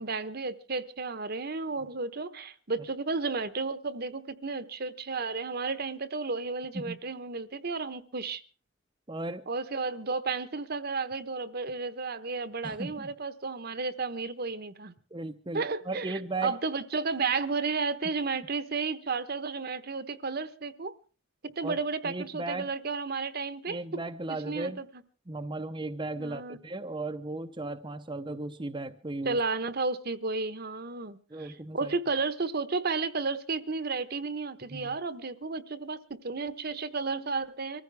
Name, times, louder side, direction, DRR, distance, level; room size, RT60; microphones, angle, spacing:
voice 1, 0.0-8.4 9.5-14.9 15.5-20.9 21.4-23.8 24.3-24.9 26.2-26.6 29.2-37.8, right 4 dB, 50° right, 1.0 m, -33 dB
voice 2, 9.1-9.4 12.6-13.1 15.1-16.6 21.6-22.7 23.7-24.8 25.3-29.4 31.3-31.9 34.7-35.0, right 2 dB, 25° right, 0.7 m, -36 dB
24.5 x 15.0 x 3.4 m
head